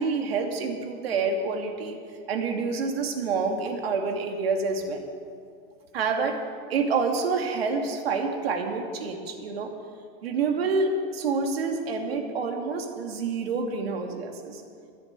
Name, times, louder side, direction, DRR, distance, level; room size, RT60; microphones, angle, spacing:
voice 1, 0.0-2.0 2.3-5.1 5.9-6.4 6.7-9.7 10.2-14.6, right 4 dB, 90° right, 3 dB, 2.5 m, -27 dB
15.0 x 10.5 x 8.2 m, 2.2 s
supercardioid pair, 160°, 29 cm